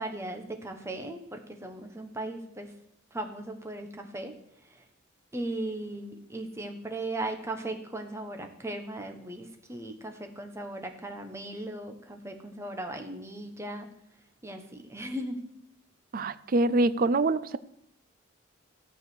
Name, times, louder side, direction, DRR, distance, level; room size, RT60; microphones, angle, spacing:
voice 1, 0.0-2.7 3.1-4.3 5.3-13.9 14.4-15.4, right 1 dB, 15° right, 4 dB, 1.2 m, -37 dB
voice 2, 16.1-17.6, right 2 dB, 45° right, 15 dB, 0.5 m, -25 dB
14.0 x 4.9 x 8.2 m, 0.77 s
head